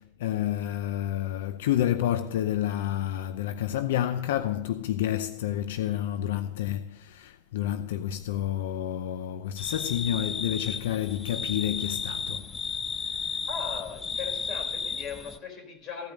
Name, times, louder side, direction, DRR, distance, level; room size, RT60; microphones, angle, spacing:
voice 1, 0.0-12.4, left 11 dB, 85° left, 0.6 m, -29 dB
sound 1, 9.6-15.4, left 5 dB, 15° left, 0.5 m, -33 dB
voice 2, 13.5-16.1, left 6 dB, 35° left, 4.0 m, -38 dB
15.5 x 5.4 x 7.6 m
supercardioid pair, 150°, 0 cm